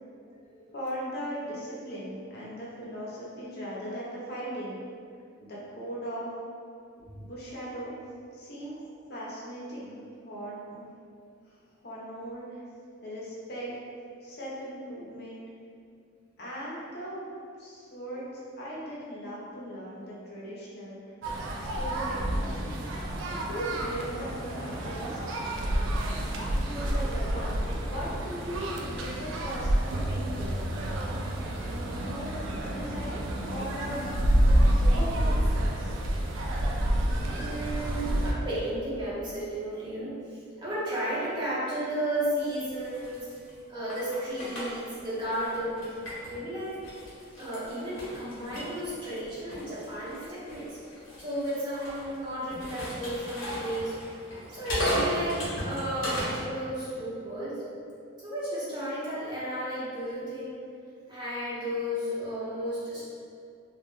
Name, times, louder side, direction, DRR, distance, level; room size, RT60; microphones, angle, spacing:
voice 1, 0.7-4.8 5.4-6.3 7.1-7.9 8.3-8.8 9.1-10.9 11.5-11.6 11.8-12.6 13.0-13.8 14.2-15.4 16.4-17.3 17.6-21.1 21.6-22.6 23.3-25.2 26.5-29.7 30.1-30.6 31.6-34.0 34.9-35.9, equal, 50° left, -6 dB, 0.6 m, -38 dB
sound 1, 21.2-38.3, right 1 dB, 75° right, 0.3 m, -28 dB
voice 2, 36.6-43.3 43.7-45.9 46.3-46.7 47.4-50.8 51.2-53.9 54.4-57.6 58.2-60.6 61.1-63.1, equal, 25° right, -10 dB, 0.7 m, -33 dB
sound 2, 42.4-46.4 46.8-56.4, equal, 90° left, 0.7 m, -36 dB
2.2 x 2.1 x 3.0 m, 2.3 s
head